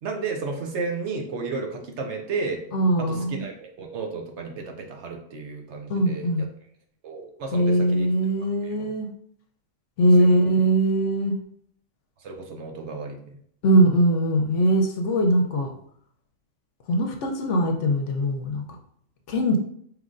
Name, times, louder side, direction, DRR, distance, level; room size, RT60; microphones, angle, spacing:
voice 1, 0.0-2.6 3.0-6.3 7.0-8.1 8.6-8.8 10.2-10.5 12.2-13.4, right 4 dB, 65° right, 2 dB, 0.9 m, -33 dB
voice 2, 2.7-3.4 5.9-6.5 7.5-9.1 10.0-11.3 13.6-15.7 16.9-18.6 19.3-19.6, right 1 dB, 70° left, 4 dB, 0.9 m, -21 dB
4.9 x 3.1 x 2.5 m, 0.65 s
omnidirectional pair, 1.4 m